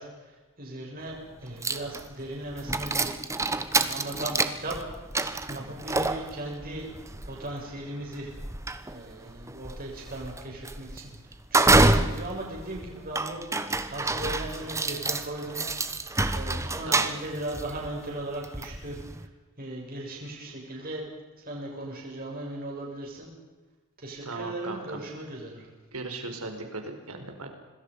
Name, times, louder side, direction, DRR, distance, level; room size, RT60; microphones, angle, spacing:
voice 1, 0.0-3.1 3.9-4.8 5.5-6.9 7.2-8.3 8.9-15.6 16.3-19.3 19.6-21.0 21.4-23.3 24.0-25.7, right 1 dB, 40° right, -2 dB, 7.2 m, -38 dB
sound 1, 1.1-1.2 1.6-19.3, right 2 dB, 15° right, 1.2 m, -28 dB
voice 2, 24.2-25.0 25.9-27.5, right 2 dB, 80° right, 5 dB, 4.7 m, -37 dB
26.5 x 21.0 x 5.5 m, 1.2 s
head